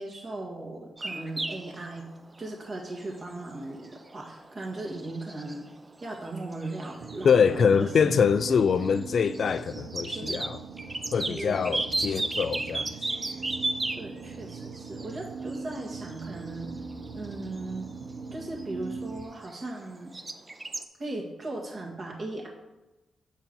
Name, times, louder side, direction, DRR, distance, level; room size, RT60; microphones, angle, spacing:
voice 1, 0.0-2.1 2.4-5.7 6.0-8.2 10.1-10.5 11.2-11.8 14.0-16.7 17.1-17.9 18.3-20.1 21.0-22.5, right 2 dB, 50° right, 1.8 m, -37 dB
sound 1, 1.0-19.9 20.1-20.9, right 2 dB, 30° right, 0.6 m, -36 dB
sound 2, 7.0-19.3, right 4 dB, 80° right, 0.4 m, -41 dB
voice 2, 7.2-10.6 11.1-12.9, left 6 dB, 65° left, 0.3 m, -24 dB
7.0 x 4.4 x 5.3 m
cardioid pair, 60°, 0 cm